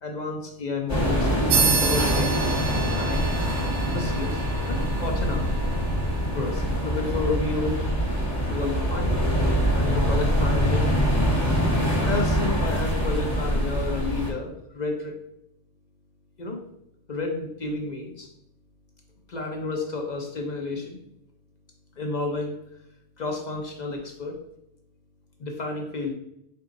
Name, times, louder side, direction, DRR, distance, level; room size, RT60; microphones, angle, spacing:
voice 1, 0.0-2.5 3.0-3.5 3.9-5.5 6.3-9.3 9.7-10.9 11.7-15.1 16.4-16.6 17.1-18.3 19.3-21.0 22.0-22.6 23.2-24.4 25.4-26.1, left 3 dB, 50° left, 2 dB, 0.6 m, -31 dB
sound 1, 0.9-14.3, equal, 15° left, 1.0 m, -24 dB
sound 2, 1.5-11.5, right 5 dB, 85° right, 1.0 m, -32 dB
4.5 x 3.9 x 2.5 m, 0.78 s
omnidirectional pair, 1.3 m